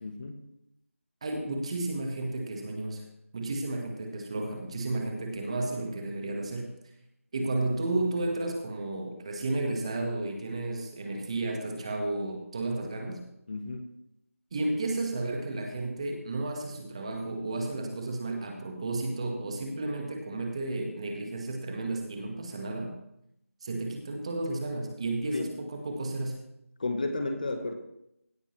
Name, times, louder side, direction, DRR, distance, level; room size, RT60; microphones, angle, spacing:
voice 1, 0.0-0.4 13.5-13.8 25.3-25.5 26.8-27.7, left 2 dB, 35° left, 7 dB, 1.0 m, -32 dB
voice 2, 1.2-3.1 3.3-6.7 7.3-13.2 14.5-23.0 23.6-26.4, right 2 dB, 25° right, 3 dB, 1.4 m, -32 dB
17.0 x 8.7 x 3.1 m, 0.80 s
figure-of-eight pair, 170°, 8 cm